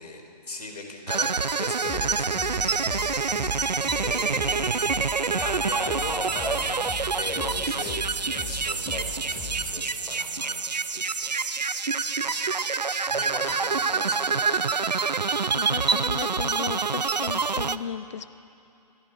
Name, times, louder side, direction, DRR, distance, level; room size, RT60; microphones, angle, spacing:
voice 1, 0.0-3.5 3.9-4.8 5.4-6.9 7.2-10.6 10.9-12.6 13.1-14.7, left 3 dB, 70° left, 4 dB, 4.2 m, -39 dB
sound 1, 1.1-17.8, right 5 dB, 85° right, 0.7 m, -27 dB
sound 2, 1.9-9.7, left 3 dB, 15° left, 2.0 m, -38 dB
voice 2, 15.5-18.3, left 8 dB, 45° left, 16 dB, 0.6 m, -35 dB
27.0 x 10.5 x 9.5 m, 2.8 s
figure-of-eight pair, 145°, 21 cm